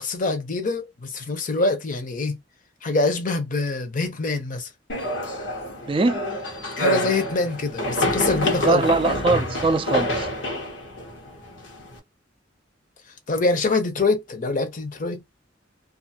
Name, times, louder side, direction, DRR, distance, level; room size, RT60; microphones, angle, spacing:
voice 1, 0.0-2.4 2.8-4.7 6.8-8.9 13.3-15.3, left 3 dB, 45° left, 0.7 m, -24 dB
sound 1, 4.9-12.0, left 1 dB, 90° left, 1.0 m, -27 dB
voice 2, 5.9-6.3 8.6-10.3, right 3 dB, 30° right, 0.3 m, -21 dB
2.5 x 2.5 x 2.7 m
head